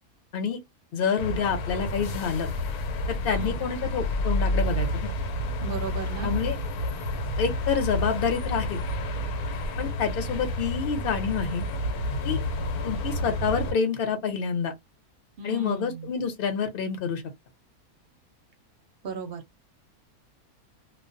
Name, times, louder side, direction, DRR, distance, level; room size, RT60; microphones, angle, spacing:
voice 1, 0.9-2.5 3.1-5.1 6.2-6.6 7.4-8.8 9.8-11.6 12.2-12.4 12.8-14.7 15.4-17.2, left 6 dB, 50° left, 0.8 m, -28 dB
sound 1, 1.2-13.7, left 1 dB, 85° left, 1.1 m, -30 dB
voice 2, 3.2-3.6 5.6-6.4 15.4-16.1 19.0-19.4, right 4 dB, 50° right, 0.7 m, -35 dB
2.4 x 2.1 x 2.6 m
omnidirectional pair, 1.6 m